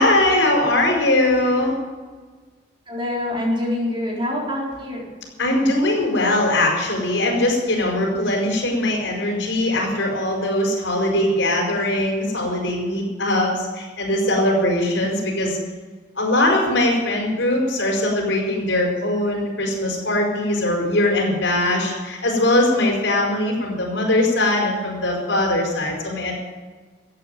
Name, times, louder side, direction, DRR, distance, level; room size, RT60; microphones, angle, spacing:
voice 1, 0.0-1.7 5.4-15.6 16.2-26.3, left 1 dB, 75° left, 0 dB, 5.0 m, -21 dB
voice 2, 2.9-5.0, left 1 dB, 25° right, -4 dB, 4.3 m, -25 dB
14.0 x 8.7 x 9.1 m, 1.4 s
head